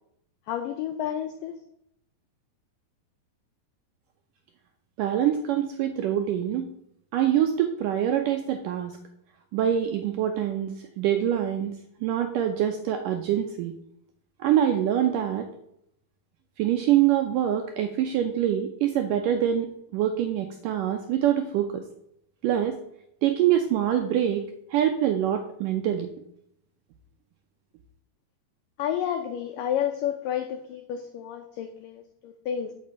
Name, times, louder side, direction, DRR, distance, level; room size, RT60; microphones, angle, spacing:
voice 1, 0.5-1.5 28.8-32.7, left 9 dB, 80° left, 6 dB, 2.0 m, -30 dB
voice 2, 5.0-6.7 7.1-9.0 9.5-11.8 12.0-13.8 14.4-15.5 16.6-21.8 22.4-22.8 23.2-24.4 24.7-26.1, right 10 dB, 85° right, 5 dB, 1.8 m, -25 dB
8.5 x 5.9 x 7.4 m, 0.75 s
omnidirectional pair, 4.8 m